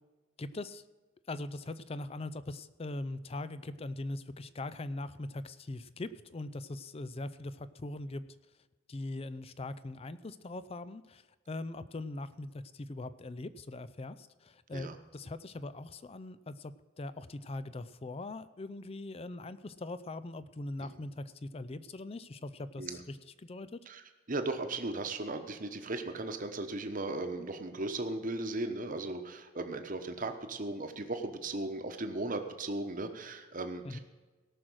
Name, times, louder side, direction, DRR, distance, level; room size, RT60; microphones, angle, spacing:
voice 1, 0.4-0.8 1.3-8.2 8.9-23.8 33.8-34.0, left 2 dB, 30° left, 14 dB, 0.4 m, -41 dB
voice 2, 23.9-34.0, right 2 dB, 40° right, 7 dB, 1.1 m, -37 dB
18.0 x 6.3 x 6.3 m, 1.3 s
head